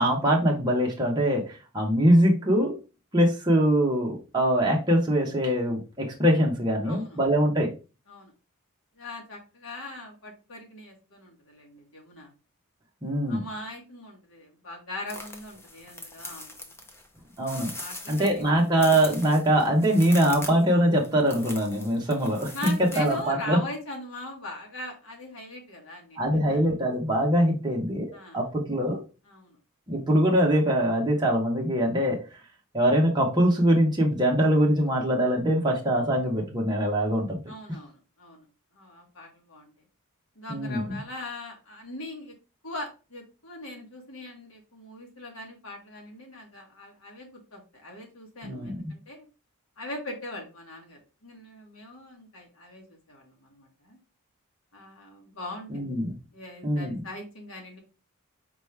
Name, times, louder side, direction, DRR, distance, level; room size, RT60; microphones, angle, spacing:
voice 1, 0.0-1.4 1.7-2.8 3.1-7.7 13.0-13.4 17.4-17.7 18.1-23.6 26.2-29.0 29.9-32.2 32.7-37.4 40.5-41.0 48.4-48.8 55.7-56.2 56.6-57.0, equal, 20° right, -1 dB, 0.9 m, -23 dB
voice 2, 6.8-7.2 8.1-8.3 9.0-12.3 13.3-16.7 17.4-18.6 22.5-26.6 28.1-28.4 29.3-29.6 37.5-38.5 38.7-39.7 40.3-42.3 42.6-49.3 49.8-54.0 54.7-55.8 56.3-57.8, left 1 dB, 65° left, 1 dB, 1.5 m, -41 dB
sound 1, 15.1-23.3, left 2 dB, 10° left, 0.6 m, -41 dB
4.6 x 3.0 x 3.3 m, 0.32 s
head